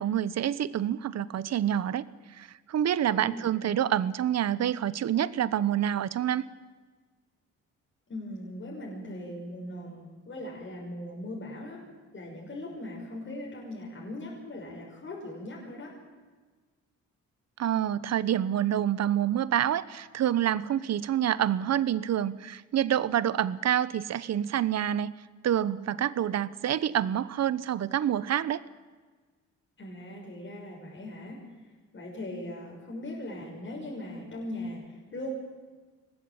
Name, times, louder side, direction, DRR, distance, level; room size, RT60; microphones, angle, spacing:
voice 1, 0.0-2.0 2.4-6.5 17.6-25.1 25.4-28.6, right 10 dB, 60° right, 17 dB, 1.1 m, -27 dB
voice 2, 3.0-3.9 8.1-11.9 12.1-16.0 29.8-31.4 31.9-35.3, left 1 dB, 40° left, -2 dB, 6.3 m, -39 dB
24.0 x 19.5 x 9.0 m, 1.4 s
cardioid pair, 90°, 30 cm